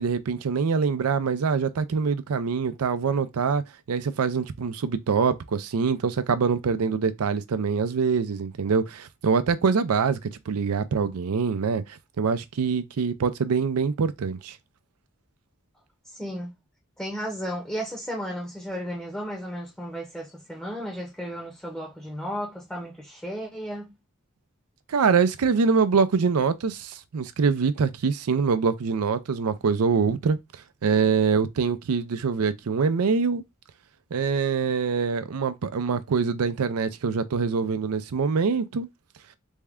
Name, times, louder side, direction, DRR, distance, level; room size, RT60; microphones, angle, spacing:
voice 1, 0.0-3.6 3.9-10.2 10.5-11.8 12.2-14.6 24.9-30.4 30.8-33.4 34.1-38.9, right 5 dB, 85° right, 0.5 m, -24 dB
voice 2, 16.1-16.5 17.0-23.9, equal, 5° left, 0.7 m, -34 dB
3.5 x 2.2 x 3.4 m
head